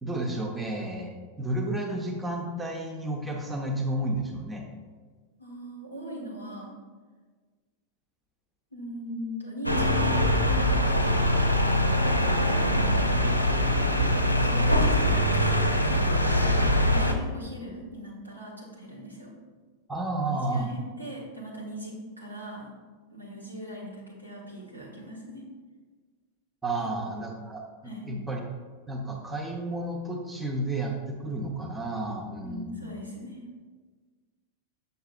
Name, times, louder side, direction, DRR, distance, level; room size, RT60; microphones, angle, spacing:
voice 1, 0.0-4.6 19.9-20.7 26.6-27.6 28.1-28.4 28.9-32.8, right 1 dB, 10° right, 1 dB, 0.8 m, -31 dB
voice 2, 5.4-6.7 8.7-10.8 14.4-19.3 20.3-22.7 23.1-25.4 26.8-26.9 27.8-28.1 32.4-33.4, equal, 90° right, -5 dB, 1.5 m, -40 dB
sound 1, 9.6-17.1, equal, 90° left, 0.5 m, -23 dB
6.7 x 6.5 x 2.4 m, 1.5 s
figure-of-eight pair, 90°, 0 cm